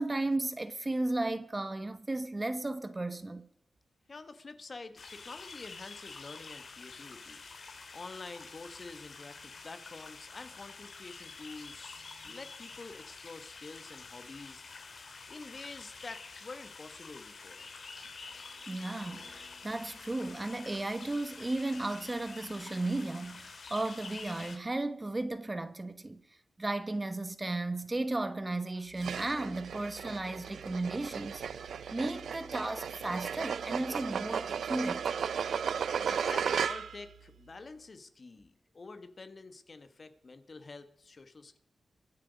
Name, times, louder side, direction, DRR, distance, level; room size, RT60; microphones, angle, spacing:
voice 1, 0.0-3.5 18.7-26.2 26.6-31.4 31.9-35.1, right 2 dB, 25° right, 1.1 m, -34 dB
voice 2, 4.1-7.4 7.9-14.6 15.3-17.7 36.0-41.6, left 3 dB, 45° left, 1.4 m, -48 dB
sound 1, 5.0-24.6, left 4 dB, 60° left, 2.3 m, -48 dB
sound 2, 29.0-37.1, right 7 dB, 90° right, 0.5 m, -35 dB
24.0 x 8.1 x 5.1 m
wide cardioid pair, 90°, 0 cm